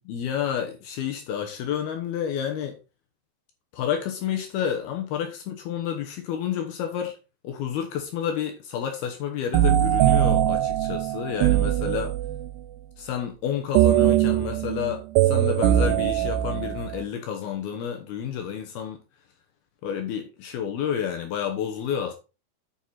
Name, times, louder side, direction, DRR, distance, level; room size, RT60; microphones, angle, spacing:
voice 1, 0.1-2.8 3.7-7.2 7.4-12.1 13.0-19.0 19.8-22.1, left 8 dB, 70° left, 2.7 m, -30 dB
sound 1, 9.5-12.5 13.8-17.0, right 13 dB, 85° right, 2.6 m, -21 dB
9.0 x 5.5 x 4.3 m
omnidirectional pair, 5.0 m